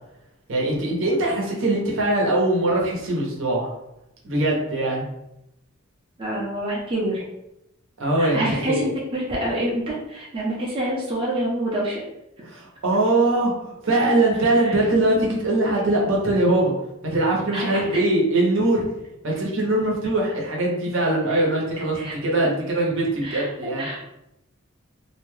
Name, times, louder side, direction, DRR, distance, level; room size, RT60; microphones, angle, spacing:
voice 1, 0.5-3.7 4.2-5.0 8.0-8.9 12.4-16.7 17.0-18.8 19.2-23.9, right 2 dB, 65° right, -2 dB, 0.9 m, -22 dB
voice 2, 6.2-7.2 8.2-12.0 17.5-17.8 21.3-21.4 21.9-22.5 23.2-24.0, right 1 dB, 25° right, -5 dB, 0.6 m, -27 dB
2.7 x 2.2 x 3.1 m, 0.85 s
head